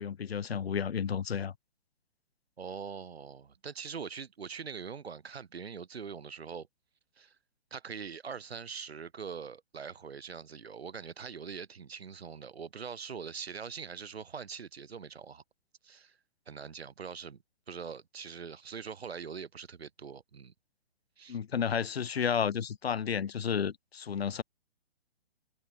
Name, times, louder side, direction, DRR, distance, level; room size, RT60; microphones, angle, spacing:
voice 1, 0.0-1.5 21.3-24.4, left 7 dB, 75° left, 1.7 m, -32 dB
voice 2, 2.6-6.7 7.2-7.4 7.7-15.4 15.8-16.2 16.5-17.4 17.7-20.5 21.2-21.4, right 6 dB, 80° right, 4.5 m, -43 dB
hypercardioid pair, 160°, 31 cm